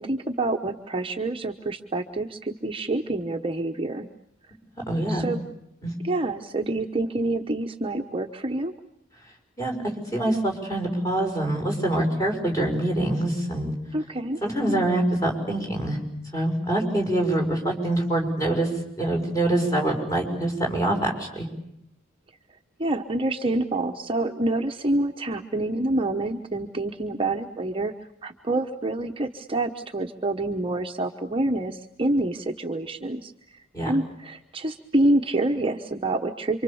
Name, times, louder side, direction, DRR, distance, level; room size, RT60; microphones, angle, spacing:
voice 1, 0.0-4.1 5.1-5.4 6.0-8.7 13.9-14.4 22.8-27.9 28.2-33.6 33.9-36.6, right 2 dB, 25° right, 4 dB, 1.0 m, -27 dB
voice 2, 4.9-5.3 5.8-5.9 9.6-13.7 14.4-16.0 16.3-18.7 19.0-21.5 33.7-33.9, right 1 dB, 15° left, 1 dB, 5.8 m, -25 dB
28.0 x 25.0 x 7.1 m, 0.79 s
head